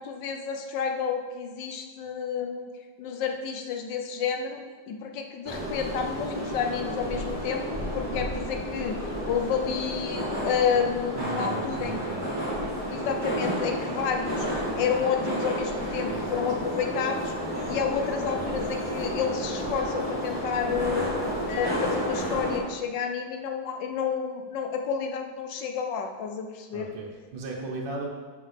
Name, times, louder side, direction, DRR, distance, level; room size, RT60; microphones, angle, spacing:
voice 1, 0.0-2.7 3.0-4.6 4.9-9.0 9.3-12.0 12.9-14.5 14.8-17.3 17.7-21.1 21.5-26.9, left 7 dB, 65° left, 4 dB, 1.3 m, -30 dB
sound 1, 5.4-22.6, equal, 25° right, 2.0 m, -31 dB
voice 2, 11.1-12.2 16.1-16.4 26.7-28.1, right 3 dB, 65° right, -3 dB, 1.8 m, -36 dB
7.5 x 5.4 x 5.9 m, 1.4 s
omnidirectional pair, 2.3 m